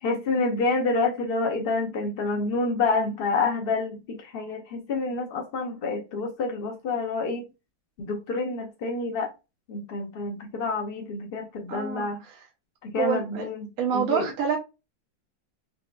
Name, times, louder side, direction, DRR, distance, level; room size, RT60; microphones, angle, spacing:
voice 1, 0.0-7.5 8.0-9.3 9.7-12.2 12.8-14.3, left 3 dB, 75° left, 0.5 m, -28 dB
voice 2, 11.7-12.4 12.9-13.5 13.8-14.6, right 7 dB, 60° right, 1.2 m, -27 dB
4.3 x 2.3 x 2.3 m
omnidirectional pair, 1.9 m